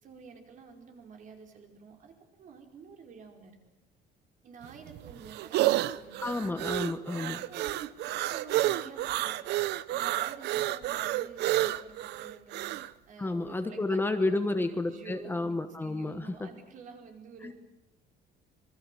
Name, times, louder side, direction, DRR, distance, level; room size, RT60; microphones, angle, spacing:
voice 1, 0.0-3.6 4.4-6.4 7.1-8.0 8.3-9.5 9.9-12.8 13.1-17.5, right 5 dB, 50° right, 3 dB, 5.0 m, -49 dB
sound 1, 4.6-12.9, right 15 dB, 75° right, 0.8 m, -30 dB
voice 2, 6.2-7.4 13.2-16.5 17.4-17.5, left 2 dB, 10° left, 8 dB, 1.2 m, -31 dB
26.5 x 22.0 x 7.6 m, 0.94 s
cardioid pair, 155°, 17 cm